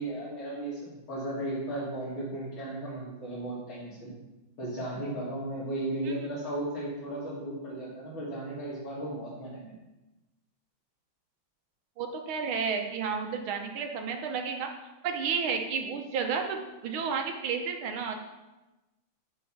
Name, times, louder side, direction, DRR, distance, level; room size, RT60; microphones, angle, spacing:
voice 1, 0.0-4.1 4.6-9.7, right 1 dB, 80° left, -9 dB, 2.8 m, -35 dB
voice 2, 12.0-14.7 15.0-18.2, right 6 dB, 85° right, 4 dB, 1.8 m, -31 dB
6.4 x 5.7 x 5.7 m, 1.0 s
omnidirectional pair, 2.2 m